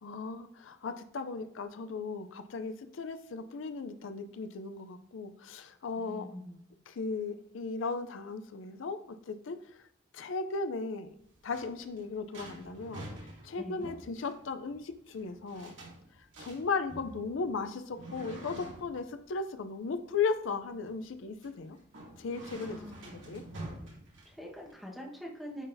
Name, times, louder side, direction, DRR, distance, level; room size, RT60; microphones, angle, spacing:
voice 1, 0.0-6.3 6.9-9.8 10.1-11.1 11.4-13.1 13.4-15.8 16.2-21.8 22.2-22.8 23.0-23.4, left 4 dB, 80° left, 10 dB, 0.4 m, -36 dB
voice 2, 6.0-6.6 13.6-14.0 22.5-23.1 24.2-25.6, equal, ahead, -3 dB, 1.2 m, -44 dB
sound 1, 11.0-24.7, right 1 dB, 75° right, 2.3 m, -48 dB
9.8 x 3.9 x 2.6 m, 0.74 s
head